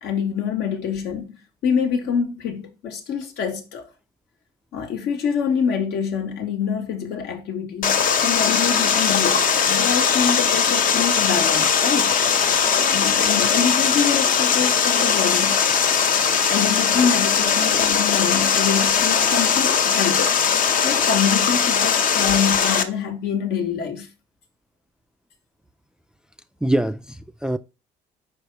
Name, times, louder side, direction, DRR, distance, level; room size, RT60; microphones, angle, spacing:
voice 1, 0.0-3.9 4.7-12.1 12.9-15.6 16.5-20.2 20.8-24.1, left 7 dB, 80° left, 1.4 m, -25 dB
Water, 7.8-22.8, left 7 dB, 55° left, 0.8 m, -19 dB
voice 2, 17.6-18.0 26.6-27.6, right 1 dB, 5° right, 0.3 m, -25 dB
5.0 x 4.9 x 4.5 m
cardioid pair, 110°, 17 cm